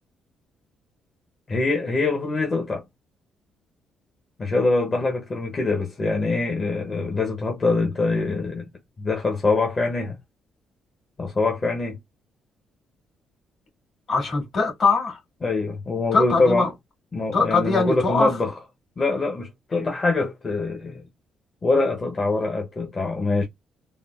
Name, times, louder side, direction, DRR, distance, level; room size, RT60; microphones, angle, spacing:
voice 1, 1.5-2.8 4.4-8.7 9.0-10.2 11.2-12.0 15.4-16.7 17.1-18.5 19.0-21.0 21.6-23.4, left 3 dB, 35° left, 0.7 m, -24 dB
voice 2, 14.1-15.2 16.1-16.7 17.3-18.3, left 4 dB, 60° left, 1.9 m, -21 dB
3.6 x 2.0 x 2.3 m
cardioid pair, 90°, 0 cm